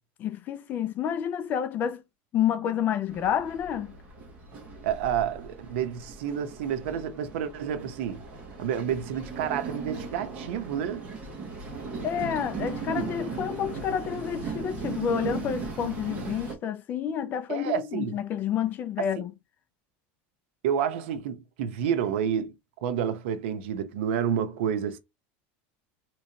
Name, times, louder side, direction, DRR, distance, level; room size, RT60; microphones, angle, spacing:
voice 1, 0.2-2.0 2.3-4.0 12.0-19.3, left 9 dB, 30° left, 0.5 m, -29 dB
Train, 3.1-16.5, right 4 dB, 20° right, 1.4 m, -37 dB
voice 2, 4.8-8.2 8.6-11.1 17.5-18.1 19.0-19.1 20.6-22.5 22.8-25.0, right 8 dB, 85° right, 0.8 m, -29 dB
3.7 x 3.0 x 2.8 m
cardioid pair, 170°, 6 cm